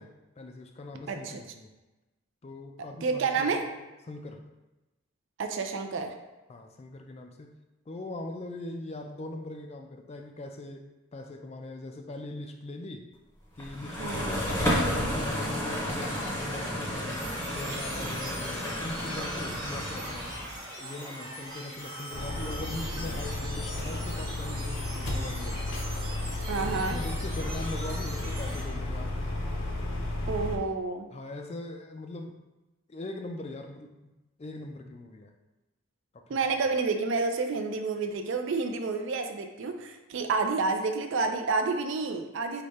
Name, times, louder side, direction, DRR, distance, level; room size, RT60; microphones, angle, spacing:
voice 1, 0.0-1.7 2.4-3.6 4.0-4.4 6.5-7.6 7.9-13.1 13.6-20.3 20.8-25.6 26.5-29.2 31.1-32.4 32.9-34.1 34.4-35.3 36.1-36.4, left 2 dB, 30° left, 4 dB, 0.3 m, -41 dB
voice 2, 1.1-1.4 3.0-3.6 5.4-6.2 14.0-14.4 26.5-27.0 30.3-31.1 36.3-42.6, right 4 dB, 60° right, 5 dB, 0.4 m, -29 dB
sound 1, 13.6-20.6, equal, 10° left, 0.7 m, -31 dB
sound 2, 17.1-28.6, right 1 dB, 20° right, 0.9 m, -41 dB
sound 3, 22.1-30.6, left 2 dB, 70° left, 0.7 m, -33 dB
4.9 x 2.2 x 4.0 m, 1.1 s
head